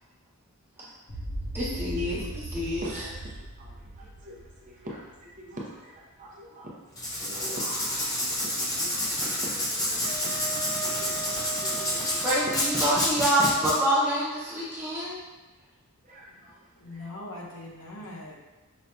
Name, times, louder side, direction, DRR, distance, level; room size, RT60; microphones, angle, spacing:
sound 1, 1.1-5.4, right 1 dB, 50° left, 1.3 m, -38 dB
voice 1, 1.5-2.9 12.2-15.2, equal, 10° right, -9 dB, 1.0 m, -26 dB
voice 2, 2.8-6.9 7.1-12.2 12.8-13.0 16.0-17.1 18.0-18.1, equal, 35° right, -4 dB, 0.6 m, -44 dB
Writing, 6.9-13.7, left 1 dB, 15° left, 0.6 m, -29 dB
Wind instrument woodwind instrument, 10.0-14.4, right 3 dB, 60° right, 1.0 m, -39 dB
voice 3, 16.7-18.4, left 2 dB, 75° left, -3 dB, 0.8 m, -41 dB
5.2 x 2.7 x 2.2 m, 1.1 s
head